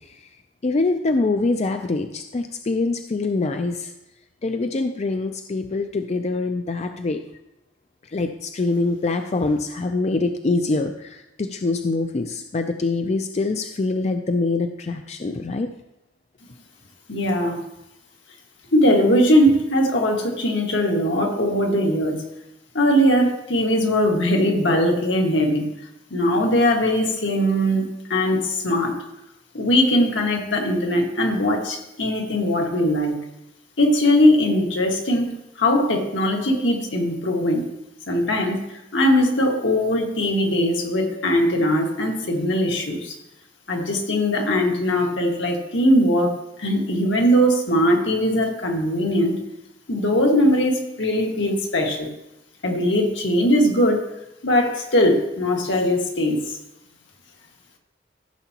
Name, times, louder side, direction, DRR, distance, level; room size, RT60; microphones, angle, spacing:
voice 1, 0.6-3.9 4.4-7.2 8.1-15.7, left 3 dB, 35° left, 7 dB, 0.4 m, -24 dB
voice 2, 17.1-17.6 18.7-22.2 22.7-25.7 26.1-29.0 29.5-33.2 33.8-35.3 35.6-37.6 38.1-38.6 38.9-43.2 43.7-49.4 49.9-52.1 52.6-54.1 54.4-56.6, equal, 75° left, 1 dB, 1.8 m, -20 dB
14.5 x 6.9 x 2.9 m, 0.87 s
head